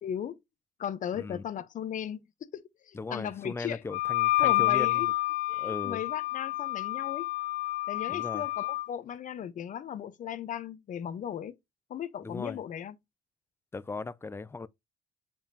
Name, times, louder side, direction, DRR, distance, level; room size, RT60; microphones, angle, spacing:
voice 1, 0.0-0.4 0.8-2.3 2.5-3.8 4.4-5.1 5.5-7.3 7.9-11.5 11.9-13.0, left 9 dB, 50° left, 0.9 m, -36 dB
voice 2, 1.1-1.4 2.9-5.1 5.6-6.0 8.1-8.5 12.2-12.6 13.7-14.7, left 3 dB, 15° left, 0.4 m, -38 dB
Wind instrument woodwind instrument, 3.9-8.9, left 18 dB, 90° left, 0.4 m, -29 dB
7.1 x 5.3 x 2.8 m
cardioid pair, 110°, 17 cm